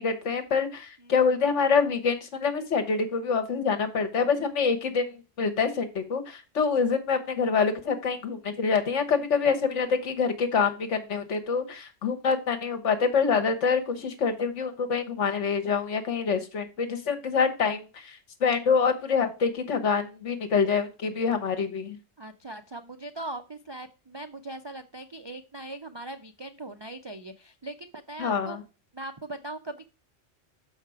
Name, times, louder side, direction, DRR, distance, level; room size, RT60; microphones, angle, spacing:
voice 1, 0.0-22.0 28.2-28.6, left 5 dB, 70° left, 6 dB, 1.4 m, -26 dB
voice 2, 22.2-28.6 28.9-29.8, right 2 dB, 45° right, 8 dB, 0.3 m, -40 dB
6.6 x 5.3 x 4.8 m, 0.32 s
omnidirectional pair, 1.3 m